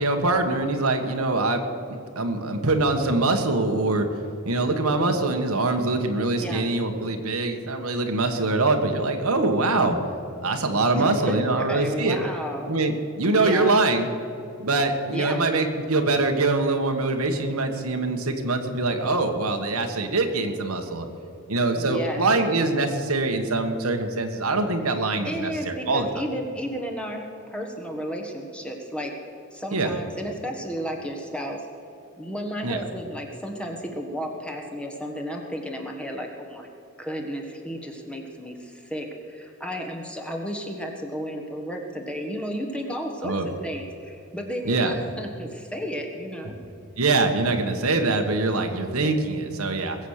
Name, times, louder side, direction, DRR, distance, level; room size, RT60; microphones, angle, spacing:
voice 1, 0.0-1.6 1.9-4.1 4.5-10.0 10.4-12.2 12.7-14.1 14.6-21.1 21.5-26.1 29.7-29.9 32.6-32.8 43.2-43.5 44.6-44.9 47.0-50.0, right 2 dB, 85° right, 5 dB, 1.5 m, -23 dB
voice 2, 10.9-12.7 13.4-13.8 15.1-15.4 21.7-22.2 25.2-29.1 29.5-31.7 32.2-36.7 37.0-46.5, equal, 5° left, 2 dB, 1.5 m, -33 dB
20.5 x 8.1 x 6.6 m, 2.8 s
head